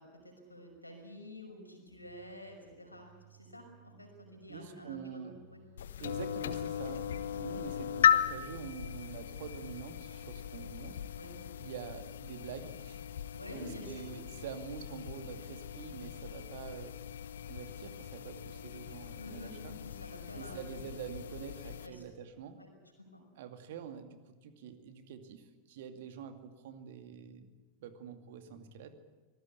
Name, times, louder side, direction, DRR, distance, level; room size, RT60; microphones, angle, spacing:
voice 1, 0.0-5.6 7.2-7.3 11.2-11.4 13.3-14.1 19.2-20.8 21.8-22.0 22.6-22.7 23.0-23.2, equal, 85° left, 3 dB, 5.9 m, -49 dB
sound 1, 2.0-2.6 2.9-4.9 5.3-7.4 7.7-9.7 10.1-11.6, left 1 dB, 75° right, 4.8 m, -60 dB
voice 2, 4.5-5.4 6.0-11.0 11.6-17.0 17.4-19.8 20.3-22.6 23.4-27.5 27.8-28.9, right 8 dB, 55° right, 9 dB, 2.3 m, -46 dB
sound 2, 5.8-21.9, left 9 dB, 65° left, 1.2 m, -36 dB
25.5 x 19.5 x 8.5 m, 1.3 s
figure-of-eight pair, 90°, 0 cm